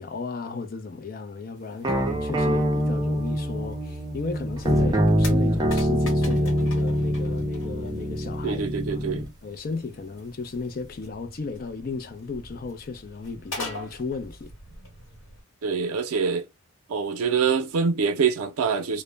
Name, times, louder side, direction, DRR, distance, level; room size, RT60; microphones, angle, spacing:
voice 1, 0.0-8.6 8.9-9.1 9.4-14.5, left 4 dB, 40° left, 0.4 m, -35 dB
sound 1, 1.8-9.3, equal, 20° right, 0.4 m, -24 dB
sound 2, 4.3-15.4, left 2 dB, 65° left, 1.2 m, -43 dB
voice 2, 8.4-9.3 15.6-16.4 16.9-19.0, right 5 dB, 90° right, 0.4 m, -25 dB
2.1 x 2.0 x 3.2 m
head